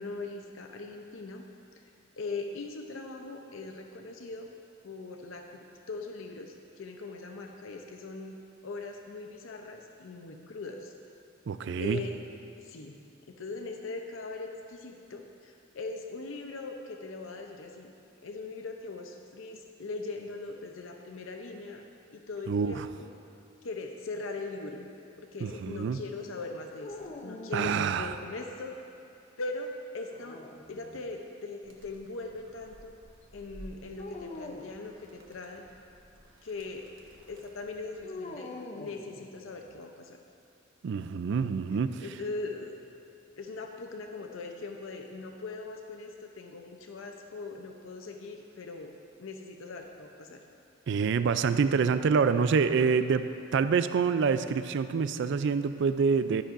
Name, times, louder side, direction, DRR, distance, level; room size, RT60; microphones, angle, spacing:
voice 1, 0.0-1.4 2.2-4.5 4.8-8.4 8.6-10.9 11.8-12.2 12.6-13.0 13.3-17.9 18.2-21.8 22.1-23.1 23.6-24.9 25.2-28.7 29.4-30.4 30.7-33.0 33.3-35.6 36.4-36.8 37.3-40.2 42.0-42.8 43.4-48.9 49.2-50.4, left 3 dB, 80° left, 3 dB, 0.6 m, -40 dB
voice 2, 11.5-12.0 22.5-22.9 25.4-26.0 27.5-28.1 40.8-42.0 50.9-56.4, right 5 dB, 65° right, 11 dB, 0.4 m, -26 dB
sound 1, 26.8-28.4 30.0-31.1 34.0-34.8 38.0-39.7, left 2 dB, 35° left, 0.6 m, -44 dB
Animal, 31.6-38.1, equal, 80° right, 1.2 m, -54 dB
12.0 x 9.9 x 2.6 m, 2.5 s
head